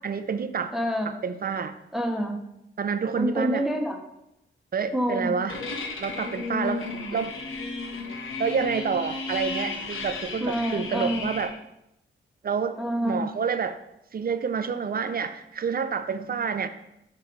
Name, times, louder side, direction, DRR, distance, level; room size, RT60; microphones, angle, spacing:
voice 1, 0.0-0.7 1.0-1.7 2.8-3.7 4.7-5.6 6.0-6.8 7.1-7.3 8.4-11.5 12.4-13.8 14.1-16.7, right 6 dB, 45° right, 10 dB, 0.6 m, -28 dB
voice 2, 0.7-1.2 1.9-2.4 3.1-4.0 4.9-5.3 10.4-11.2 12.8-13.3, equal, ahead, 3 dB, 1.1 m, -27 dB
sound 1, 5.5-11.5, left 3 dB, 75° left, 1.1 m, -33 dB
7.2 x 3.3 x 5.4 m, 0.85 s
cardioid pair, 60°, 21 cm